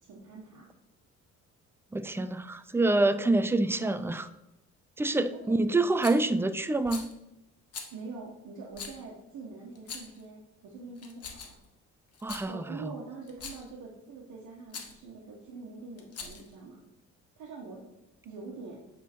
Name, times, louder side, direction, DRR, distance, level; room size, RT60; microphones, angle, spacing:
voice 1, 0.1-0.7 5.1-5.4 7.9-11.6 12.5-16.8 17.4-17.8 18.2-18.8, right 4 dB, 75° right, -3 dB, 1.3 m, -44 dB
voice 2, 1.9-4.3 5.0-7.1 12.2-12.9, right 2 dB, 10° right, 12 dB, 0.4 m, -27 dB
Rattle, 6.0-6.3 6.8-7.1 7.7-7.9 8.7-9.0 9.8-10.2 11.0-11.7 12.1-12.5 13.3-13.7 14.7-14.9 16.0-16.5, left 5 dB, 55° left, 1.3 m, -42 dB
8.5 x 3.7 x 4.4 m, 0.94 s
cardioid pair, 90°, 30 cm